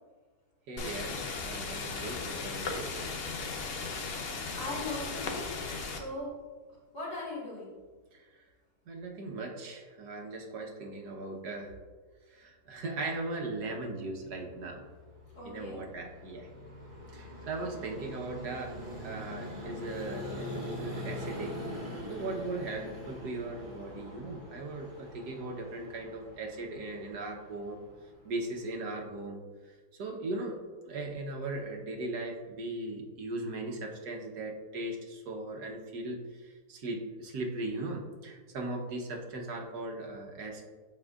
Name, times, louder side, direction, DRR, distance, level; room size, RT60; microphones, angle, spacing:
voice 1, 0.7-2.9 8.1-8.3 8.9-11.7 12.3-14.8 15.4-16.5 17.1-21.6 22.1-27.8 28.2-29.4 29.6-40.6, right 2 dB, 70° right, 1 dB, 1.5 m, -38 dB
sound 1, 0.8-6.0, left 4 dB, 55° left, 0.7 m, -36 dB
voice 2, 4.6-5.5 5.8-6.3 6.9-7.7 15.3-15.8, left 2 dB, 70° left, -6 dB, 2.4 m, -39 dB
Vehicle, 14.2-28.9, left 1 dB, 30° right, 1.4 m, -43 dB
12.0 x 4.4 x 2.4 m, 1.4 s
omnidirectional pair, 1.8 m